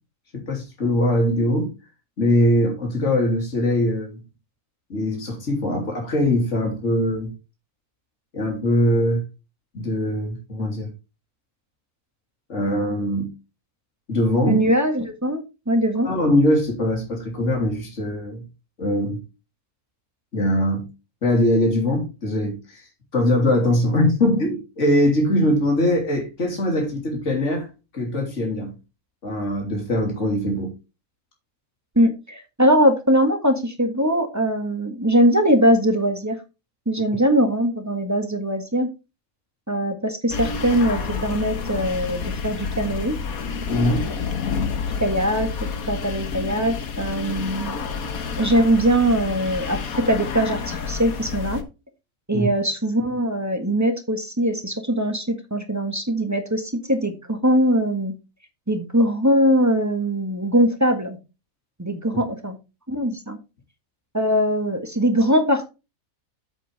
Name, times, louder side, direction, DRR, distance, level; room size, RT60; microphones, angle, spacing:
voice 1, 0.3-1.7 2.2-4.2 4.9-7.3 8.3-9.2 9.7-10.9 12.5-13.3 14.1-14.6 16.0-18.4 18.8-19.2 20.3-20.9 21.2-22.9 23.1-27.7 27.9-28.7 29.2-30.7 43.7-44.1 52.3-52.5 62.1-62.2, left 1 dB, 55° left, 3.4 m, -21 dB
voice 2, 14.4-16.1 31.9-36.4 36.8-38.9 39.7-43.2 45.0-47.8 48.4-51.6 52.3-58.1 58.7-61.2 61.8-62.6 62.9-63.4 64.1-65.7, equal, 10° right, 1.6 m, -21 dB
sound 1, 40.3-51.6, left 5 dB, 90° left, 1.7 m, -29 dB
8.3 x 7.9 x 3.4 m
omnidirectional pair, 1.5 m